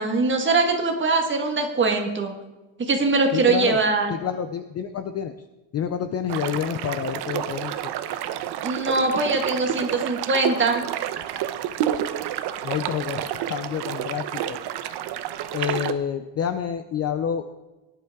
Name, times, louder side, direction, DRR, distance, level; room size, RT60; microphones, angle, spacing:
voice 1, 0.0-2.3 2.8-4.1 8.6-10.8, right 3 dB, 25° right, 3 dB, 1.5 m, -22 dB
voice 2, 3.3-3.8 4.1-5.3 5.7-7.8 12.6-14.6 15.5-17.4, left 8 dB, 35° left, 9 dB, 0.4 m, -28 dB
sound 1, 6.3-15.9, right 11 dB, 55° right, 0.7 m, -29 dB
18.0 x 11.0 x 3.5 m, 1.1 s
cardioid pair, 180°, 50 cm